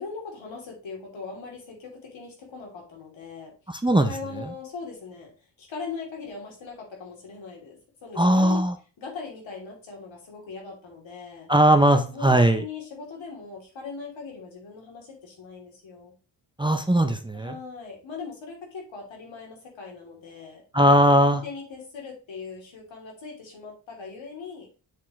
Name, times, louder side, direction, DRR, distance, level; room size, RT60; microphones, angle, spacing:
voice 1, 0.0-3.5 4.1-8.6 9.0-11.5 12.1-16.1 17.3-20.6 21.4-24.7, left 5 dB, 85° left, 0 dB, 3.1 m, -40 dB
voice 2, 3.7-4.1 8.2-8.7 11.5-12.6 16.6-17.6 20.7-21.4, right 1 dB, 10° right, 7 dB, 0.5 m, -19 dB
7.4 x 6.8 x 3.1 m, 0.35 s
wide cardioid pair, 180°, 45 cm